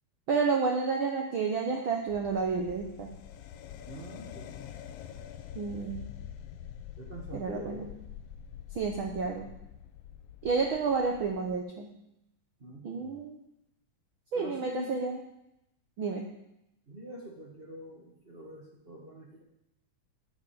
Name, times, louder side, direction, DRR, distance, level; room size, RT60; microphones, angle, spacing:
voice 1, 0.3-3.1 5.5-6.0 7.3-7.9 8.7-9.5 10.4-11.9 12.8-13.4 14.3-15.2 16.0-16.3, right 4 dB, 70° right, 2 dB, 1.2 m, -30 dB
sound 1, 2.1-11.6, left 9 dB, 85° left, 1.4 m, -46 dB
voice 2, 3.9-4.6 7.0-7.9 12.6-13.2 14.3-14.9 16.9-19.4, right 1 dB, 40° right, -1 dB, 0.8 m, -45 dB
10.5 x 6.1 x 8.6 m, 0.84 s
omnidirectional pair, 3.6 m